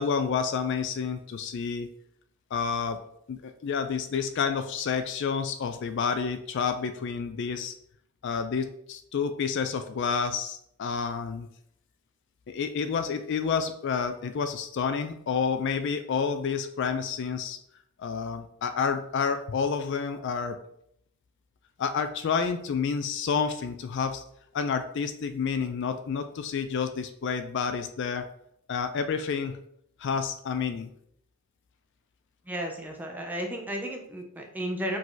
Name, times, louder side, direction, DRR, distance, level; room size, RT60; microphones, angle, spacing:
voice 1, 0.0-1.9 2.5-3.0 3.3-7.7 8.2-11.5 12.5-17.6 18.0-20.6 21.8-24.2 24.5-28.3 28.7-29.6 30.0-30.9, left 6 dB, 50° left, 9 dB, 0.3 m, -29 dB
voice 2, 32.5-35.0, equal, 10° right, 1 dB, 0.6 m, -33 dB
4.9 x 2.7 x 3.9 m, 0.71 s
head